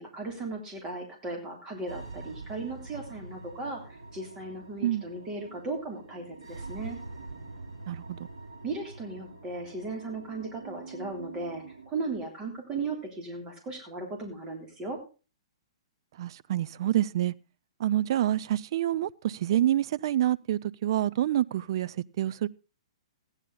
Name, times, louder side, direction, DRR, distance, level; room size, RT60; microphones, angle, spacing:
voice 1, 0.0-7.0 8.6-15.0, right 3 dB, 20° right, 3.4 m, -37 dB
sound 1, 1.9-11.9, right 3 dB, 65° right, 5.1 m, -45 dB
voice 2, 7.9-8.2 16.2-17.3 17.8-22.5, right 12 dB, 50° right, 0.5 m, -27 dB
15.0 x 9.9 x 3.9 m
figure-of-eight pair, 115°, 3 cm